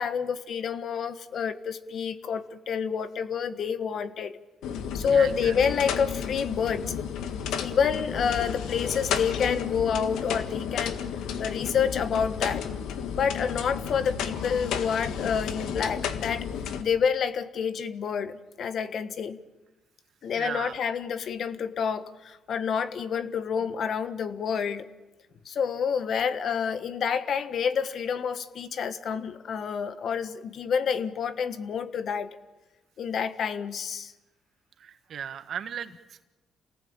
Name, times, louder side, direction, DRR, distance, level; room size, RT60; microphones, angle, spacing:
voice 1, 0.0-4.4 4.9-6.9 7.6-11.0 11.4-12.7 13.1-16.5 16.8-19.4 20.2-24.8 25.4-32.4 33.0-34.1, left 6 dB, 60° left, 12 dB, 1.4 m, -28 dB
sound 1, 4.6-16.8, left 7 dB, 85° left, 1.7 m, -32 dB
voice 2, 5.1-5.5 20.3-20.8 34.8-36.3, right 8 dB, 60° right, 9 dB, 1.7 m, -36 dB
28.0 x 19.0 x 8.8 m, 1.1 s
cardioid pair, 90°, 0 cm